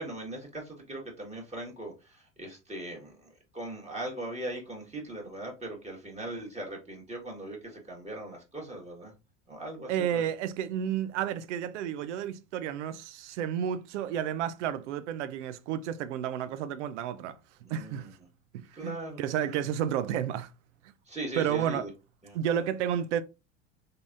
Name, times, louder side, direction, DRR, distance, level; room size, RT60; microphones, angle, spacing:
voice 1, 0.0-9.1 9.5-10.3 17.6-18.1 18.7-19.6 21.1-21.9 22.2-22.4, right 1 dB, 20° right, 1.8 m, -40 dB
voice 2, 9.9-17.4 17.7-18.1 18.5-20.5 21.4-21.8 22.3-23.2, right 9 dB, 75° right, 0.6 m, -31 dB
3.8 x 3.7 x 2.5 m
hypercardioid pair, 70°, 36 cm